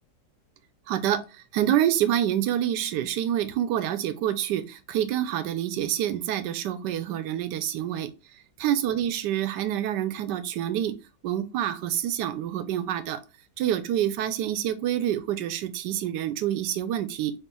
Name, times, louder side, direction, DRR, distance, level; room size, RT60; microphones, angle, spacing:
voice 1, 0.9-1.2 1.5-8.1 8.6-10.9 11.2-13.2 13.6-17.3, right 11 dB, 90° right, 1.2 m, -27 dB
5.5 x 3.2 x 2.2 m
omnidirectional pair, 1.8 m